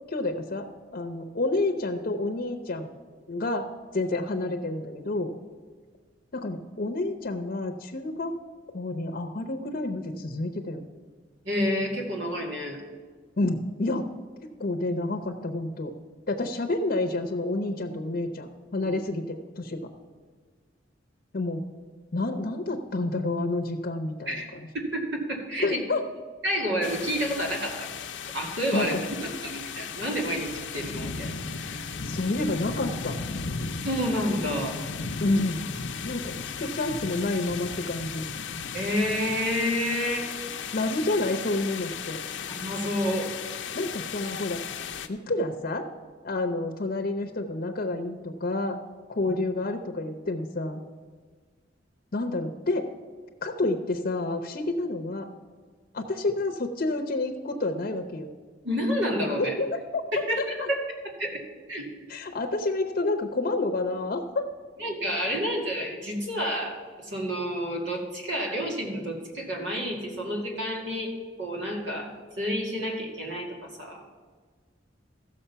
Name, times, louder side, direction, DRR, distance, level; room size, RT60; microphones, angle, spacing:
voice 1, 0.1-2.9 3.3-3.7 3.9-5.3 6.3-8.3 8.7-10.8 13.4-14.1 14.6-15.9 16.3-19.9 21.3-21.6 22.1-24.7 25.6-26.0 28.7-29.0 32.0-33.1 35.2-35.6 36.0-38.2 40.7-42.2 43.7-44.6 45.1-45.9 46.2-48.8 49.1-50.8 52.1-52.9 53.4-55.2 55.9-58.3 59.4-60.0 60.4-60.5 62.1-64.4, left 2 dB, 50° left, 4 dB, 0.7 m, -29 dB
voice 2, 11.4-12.8 18.8-18.9 24.3-24.5 24.7-25.0 25.3-25.8 26.4-27.9 28.3-28.9 29.4-31.9 33.8-34.8 38.7-40.3 42.5-43.3 49.2-49.3 58.6-59.5 60.1-60.4 60.7-60.8 61.2-61.4 61.7-61.9 64.8-74.0, equal, 75° right, 0 dB, 2.2 m, -29 dB
sound 1, 26.8-45.1, left 5 dB, 90° left, 0.7 m, -36 dB
14.0 x 6.5 x 5.6 m, 1.5 s
head